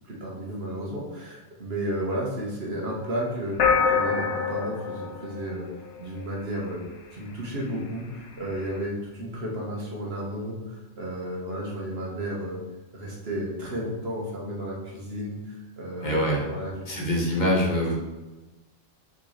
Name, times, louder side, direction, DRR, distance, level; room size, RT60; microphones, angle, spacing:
voice 1, 0.0-3.6 3.8-5.7 6.0-6.8 7.1-12.6 12.9-17.0, equal, 55° right, -3 dB, 1.7 m, -33 dB
sound 1, 3.6-6.2, left 5 dB, 75° left, 1.1 m, -25 dB
voice 2, 16.0-16.5 16.9-17.9, equal, 40° left, -2 dB, 1.4 m, -24 dB
6.4 x 4.6 x 3.3 m, 1.1 s
omnidirectional pair, 1.2 m